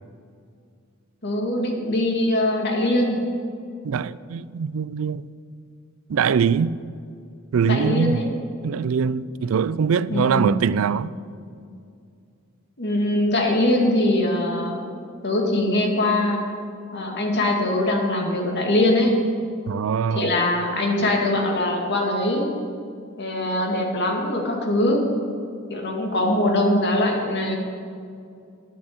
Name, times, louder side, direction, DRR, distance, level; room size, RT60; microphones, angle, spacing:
voice 1, 1.2-3.2 7.6-8.2 10.1-10.6 12.8-14.8 15.2-16.4 16.9-19.2 20.1-22.5 23.2-25.0 25.7-27.6, left 1 dB, 55° left, 2.2 m, -22 dB
voice 2, 3.8-5.3 6.1-6.8 7.5-8.2 8.6-11.1 19.7-20.3, right 6 dB, 70° right, 0.4 m, -22 dB
11.0 x 8.9 x 8.0 m
head